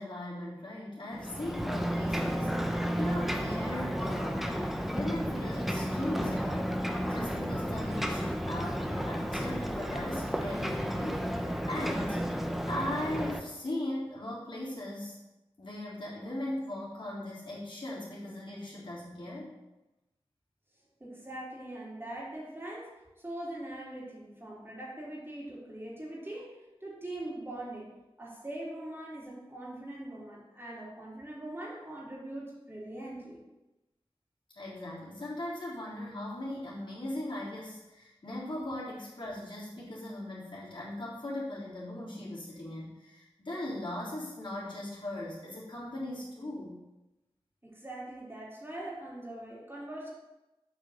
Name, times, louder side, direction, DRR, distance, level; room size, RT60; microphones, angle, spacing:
voice 1, 0.0-12.4 12.7-15.2 15.6-19.5 34.6-46.7, left 1 dB, 55° left, -7 dB, 3.5 m, -39 dB
Ocean, 1.1-13.4, equal, ahead, 0.8 m, -32 dB
voice 2, 21.0-22.9 23.2-27.9 28.2-33.4 47.6-50.1, right 1 dB, 25° right, -5 dB, 3.3 m, -42 dB
8.2 x 5.0 x 6.5 m, 1.0 s
wide cardioid pair, 60°, 10 cm